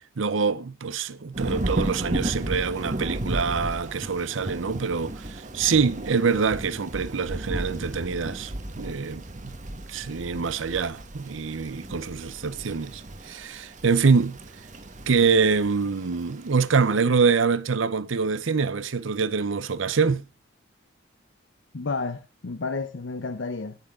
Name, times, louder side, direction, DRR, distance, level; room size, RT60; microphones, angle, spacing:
voice 1, 0.2-8.5 8.8-9.6 9.9-14.4 15.1-20.2, right 5 dB, 80° right, 0.7 m, -25 dB
Thunder / Rain, 1.3-16.9, right 1 dB, 40° right, 1.3 m, -34 dB
voice 2, 21.7-23.8, left 4 dB, 70° left, 0.7 m, -31 dB
17.5 x 6.4 x 3.6 m
head